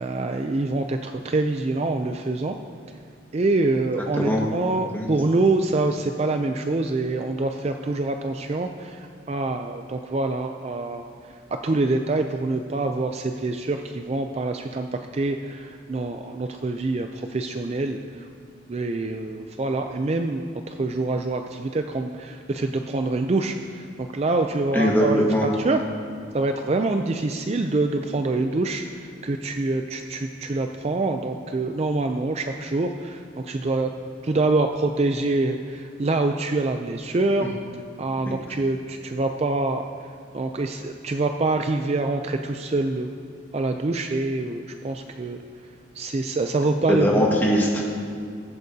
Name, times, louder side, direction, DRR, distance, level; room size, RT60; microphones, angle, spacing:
voice 1, 0.0-2.6 3.3-18.3 18.7-25.8 26.3-33.9 34.2-37.5 38.0-39.9 40.3-43.1 43.5-45.4 45.9-47.2, right 2 dB, 35° right, 5 dB, 0.4 m, -25 dB
voice 2, 24.7-25.5 38.2-38.3 46.9-47.9, equal, 10° left, -3 dB, 1.6 m, -21 dB
21.0 x 8.2 x 2.8 m, 2.3 s
head